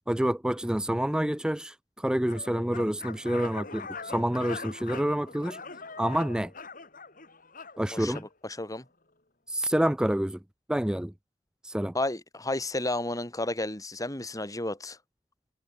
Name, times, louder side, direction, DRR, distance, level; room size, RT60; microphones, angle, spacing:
voice 1, 0.1-5.6 6.0-6.5 7.8-8.3 9.5-10.4 10.7-11.1 11.6-11.9, right 1 dB, 5° right, 0.4 m, -28 dB
sound 1, 2.2-8.3, left 4 dB, 55° left, 5.6 m, -42 dB
voice 2, 8.4-8.9 11.9-15.0, left 2 dB, 20° left, 3.4 m, -32 dB
head